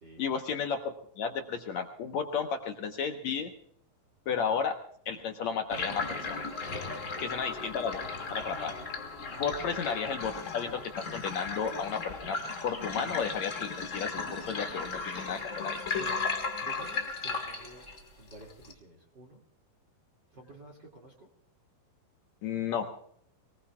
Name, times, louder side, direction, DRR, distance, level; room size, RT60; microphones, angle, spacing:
voice 1, 0.2-3.5 4.3-4.8 5.1-6.4 7.2-8.0 8.3-8.7 9.4-12.4 12.6-15.8 22.4-22.9, left 6 dB, 70° left, 5 dB, 1.8 m, -33 dB
sound 1, 5.7-18.7, left 4 dB, 50° left, 0.9 m, -36 dB
voice 2, 6.9-7.4 9.5-9.6 15.9-16.2 16.6-17.8 18.2-19.4 20.3-21.3, right 1 dB, 35° right, 0 dB, 2.4 m, -51 dB
24.0 x 19.0 x 2.3 m, 0.66 s
omnidirectional pair, 4.4 m